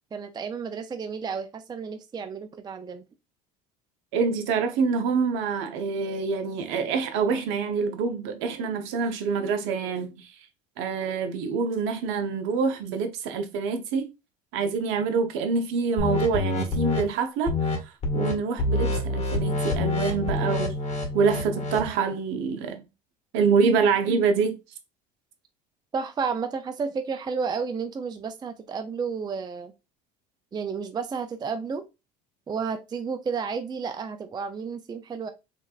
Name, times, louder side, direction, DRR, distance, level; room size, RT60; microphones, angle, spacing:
voice 1, 0.1-3.0 25.9-29.7 30.5-31.8 32.5-35.3, right 5 dB, 20° right, 0.4 m, -31 dB
voice 2, 4.1-10.3 10.8-14.1 14.5-17.7 18.1-22.8 23.3-24.5, right 5 dB, 65° right, 0.8 m, -26 dB
sound 1, 16.0-17.0 17.5-17.8 18.0-18.3 18.6-21.9, left 2 dB, 30° left, 1.4 m, -26 dB
3.3 x 3.2 x 2.4 m
hypercardioid pair, 75°, 21 cm